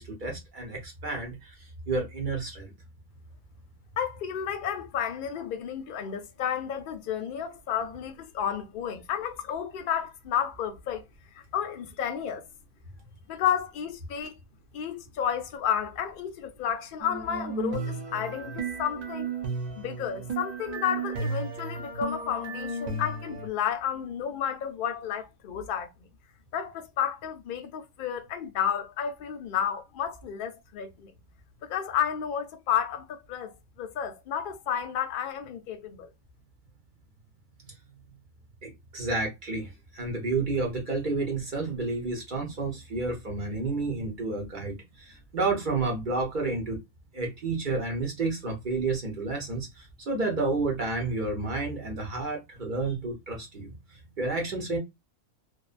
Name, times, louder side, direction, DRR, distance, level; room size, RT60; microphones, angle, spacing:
voice 1, 0.0-2.7 38.6-46.8 47.1-53.7 54.2-54.8, right 3 dB, 45° right, 0.7 m, -30 dB
voice 2, 4.0-11.0 11.5-12.4 13.3-14.4 14.7-19.3 19.8-25.9 26.5-31.1 31.6-36.1, left 9 dB, 65° left, 0.5 m, -31 dB
sound 1, 17.0-23.5, right 3 dB, 80° right, 0.3 m, -34 dB
2.6 x 2.1 x 2.4 m
omnidirectional pair, 1.4 m